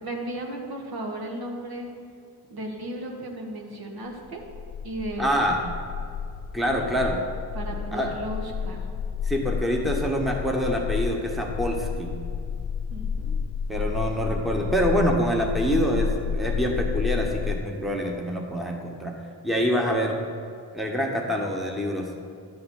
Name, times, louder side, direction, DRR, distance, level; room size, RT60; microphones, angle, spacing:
voice 1, 0.0-1.9 2.5-4.4 4.8-5.4 7.5-8.9 12.9-13.3 13.7-14.1, right 1 dB, 60° right, 1 dB, 1.6 m, -35 dB
sound 1, 4.2-17.6, left 6 dB, 40° left, 0.5 m, -31 dB
voice 2, 5.2-5.7 6.5-7.2 7.9-8.2 9.2-12.2 13.7-19.1 19.4-20.2 20.7-22.1, equal, ahead, 1 dB, 1.1 m, -26 dB
11.0 x 3.8 x 7.2 m, 2.4 s
cardioid pair, 85°, 41 cm